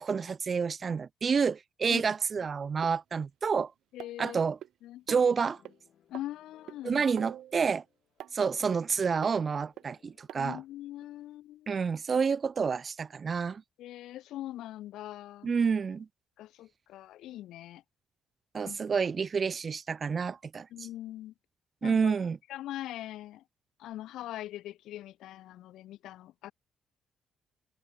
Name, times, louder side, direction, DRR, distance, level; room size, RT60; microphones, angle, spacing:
voice 1, 0.0-3.7 4.2-4.6 5.1-5.6 6.8-7.8 8.3-10.6 11.7-13.6 15.4-16.1 18.5-20.7 21.8-22.4, right 5 dB, 40° right, 0.6 m, -29 dB
sound 1, 2.8-2.9 4.0-4.7 5.1-5.3 5.7-5.8 6.1-6.3 6.7-6.8 7.2-7.8 8.2-8.3 8.7-8.8 9.2-9.4 9.8-9.9 10.3-10.4 11.0-11.1, right 12 dB, 75° right, 2.2 m, -43 dB
voice 2, 3.9-4.4 4.8-5.1 6.1-7.0 10.3-11.7 13.8-15.5 16.4-17.8 18.6-19.0 20.7-21.3 21.8-22.1 22.5-23.4 23.8-26.5, left 14 dB, 85° left, 0.7 m, -42 dB
sound 2, 5.5-11.2, left 9 dB, 65° left, 6.0 m, -66 dB
cardioid pair, 90°, 0 cm